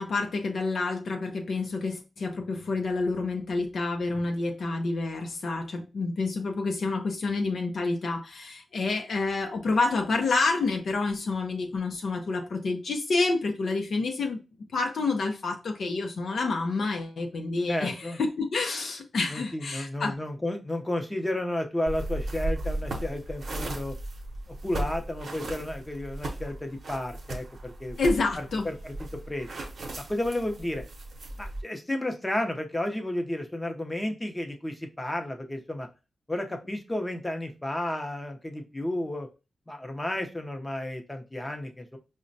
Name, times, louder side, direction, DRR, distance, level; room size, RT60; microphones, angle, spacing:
voice 1, 0.0-14.4 14.7-20.2 28.0-28.7, left 3 dB, 70° left, 0.5 m, -28 dB
voice 2, 17.7-18.2 19.3-24.0 24.5-28.0 28.4-29.5 30.1-30.8 31.4-35.9 36.3-39.3 39.7-42.0, left 1 dB, 15° left, 0.6 m, -32 dB
sound 1, 21.9-31.6, right 1 dB, 65° right, 0.8 m, -36 dB
4.9 x 2.1 x 2.6 m
wide cardioid pair, 110°, 0 cm